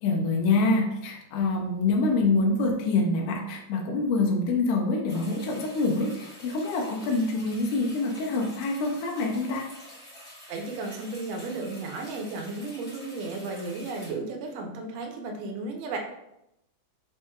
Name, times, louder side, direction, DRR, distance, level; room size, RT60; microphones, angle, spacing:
voice 1, 0.0-9.7, left 3 dB, 90° left, 0 dB, 1.3 m, -26 dB
sound 1, 5.1-14.1, equal, 35° left, 1.0 m, -48 dB
voice 2, 10.5-16.0, right 3 dB, 75° right, 2 dB, 1.7 m, -34 dB
4.5 x 4.3 x 2.2 m, 0.85 s
omnidirectional pair, 3.4 m